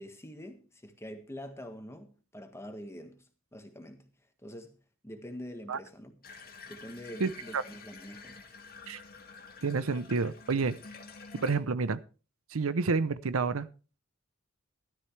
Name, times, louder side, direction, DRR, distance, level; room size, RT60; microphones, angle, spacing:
voice 1, 0.0-3.2 3.5-4.1 4.4-4.8 5.0-6.2 6.7-8.4, equal, 15° left, 1.6 m, -45 dB
Water tap faucet / Bathtub (filling or washing), 6.2-11.6, left 4 dB, 45° left, 2.0 m, -49 dB
voice 2, 7.2-7.6 8.9-9.0 9.6-10.8 11.4-12.0 12.5-13.7, right 4 dB, 80° right, 0.7 m, -29 dB
13.5 x 12.5 x 3.3 m
head